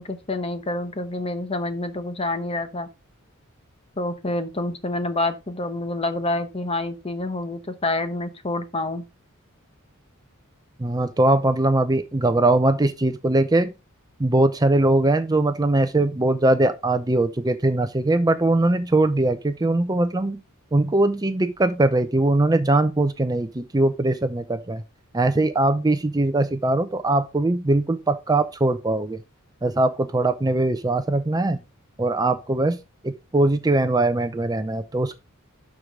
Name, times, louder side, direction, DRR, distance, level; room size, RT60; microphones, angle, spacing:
voice 1, 0.0-2.9 4.0-9.0, left 2 dB, 30° left, 1.0 m, -27 dB
voice 2, 10.8-13.7 14.2-20.4 20.7-24.8 25.1-29.2 29.6-31.6 32.0-32.8 33.0-35.2, right 2 dB, 20° right, 0.5 m, -21 dB
12.0 x 4.7 x 3.7 m
head